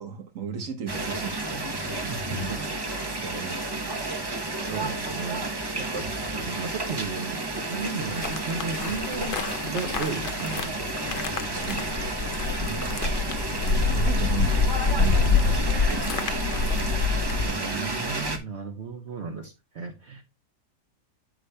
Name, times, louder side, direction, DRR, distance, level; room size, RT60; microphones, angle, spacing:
voice 1, 0.0-1.8 2.3-4.1 11.5-17.0, right 6 dB, 80° right, 1.6 m, -37 dB
sound 1, 0.9-18.4, right 2 dB, 25° right, 0.7 m, -31 dB
voice 2, 2.0-2.6 4.7-10.9 12.6-12.9 17.4-20.2, right 5 dB, 60° right, 1.2 m, -35 dB
sound 2, 8.1-17.5, left 4 dB, 50° left, 0.7 m, -26 dB
8.6 x 8.1 x 2.2 m
omnidirectional pair, 1.4 m